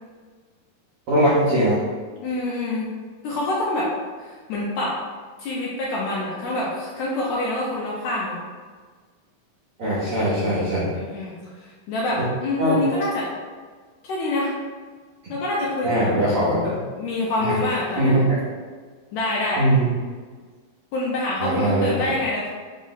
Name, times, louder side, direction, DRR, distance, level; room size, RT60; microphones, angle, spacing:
voice 1, 1.1-1.8 9.8-10.9 12.6-12.8 15.8-16.6 17.4-17.6 18.0-18.4 19.6-19.9 21.4-22.1, right 1 dB, 80° right, -10 dB, 1.2 m, -20 dB
voice 2, 2.2-2.9 3.2-3.9 4.2-5.0 5.4-8.4 10.9-13.3 14.0-14.5 15.3-16.7 17.0-18.2 19.1-19.7 20.9-22.5, left 2 dB, 85° left, -5 dB, 1.6 m, -26 dB
5.2 x 2.0 x 3.8 m, 1.5 s
omnidirectional pair, 3.9 m